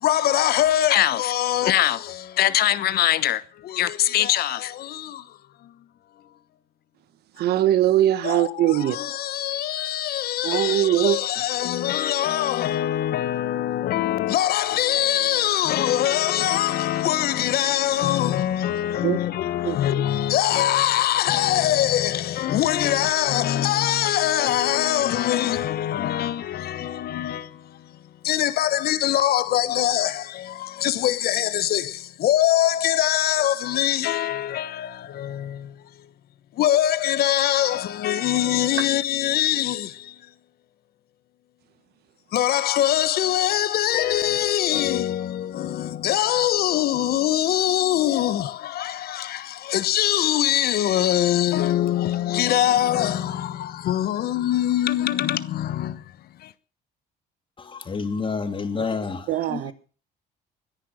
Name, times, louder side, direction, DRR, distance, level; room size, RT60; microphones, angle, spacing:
voice 1, 0.0-5.3 5.6-5.7 8.2-27.9 28.2-35.7 36.6-40.1 42.3-56.0 56.4-56.5, left 12 dB, 65° left, 1.1 m, -23 dB
voice 2, 7.4-9.0 10.4-11.2 19.0-19.2 19.6-19.7 59.3-59.7, right 12 dB, 75° right, 1.4 m, -21 dB
voice 3, 57.6-59.7, left 5 dB, 30° left, 2.8 m, -29 dB
21.0 x 10.5 x 6.4 m
cardioid pair, 110°, 17 cm